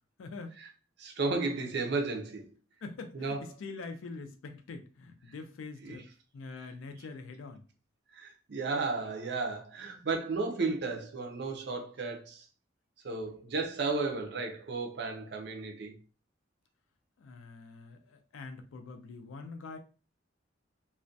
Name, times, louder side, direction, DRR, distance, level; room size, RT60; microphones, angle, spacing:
voice 1, 0.2-0.6 2.8-6.1 6.3-7.6 17.2-19.8, left 3 dB, 85° left, 0.4 m, -44 dB
voice 2, 1.0-2.5 3.1-3.4 5.8-6.0 8.1-12.5 13.0-16.0, right 3 dB, 55° right, 0.5 m, -34 dB
2.3 x 2.1 x 2.6 m
head